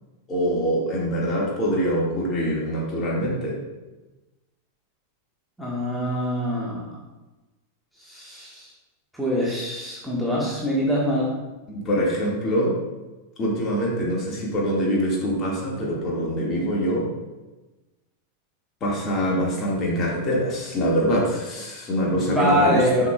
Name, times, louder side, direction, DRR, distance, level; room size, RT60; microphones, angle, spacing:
voice 1, 0.3-3.6 11.7-12.8 13.4-17.1 18.8-23.1, equal, 30° left, -3 dB, 2.1 m, -24 dB
voice 2, 5.6-6.9 8.0-8.7 9.1-11.3 22.2-23.1, equal, ahead, -6 dB, 1.7 m, -24 dB
10.5 x 5.7 x 2.4 m, 1.1 s
figure-of-eight pair, 90°, 0 cm